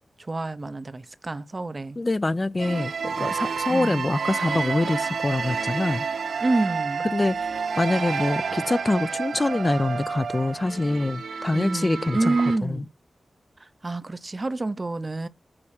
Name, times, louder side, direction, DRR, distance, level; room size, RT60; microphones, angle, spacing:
voice 1, 0.2-2.0 3.7-4.1 6.4-7.1 11.5-12.9 13.8-15.3, right 2 dB, 35° right, 0.6 m, -28 dB
voice 2, 2.0-6.0 7.1-7.4 7.8-12.4 12.6-12.8, left 2 dB, 30° left, 0.4 m, -25 dB
sound 1, 2.6-12.6, right 5 dB, 75° right, 0.6 m, -29 dB
8.6 x 2.9 x 6.3 m
wide cardioid pair, 80°, 0 cm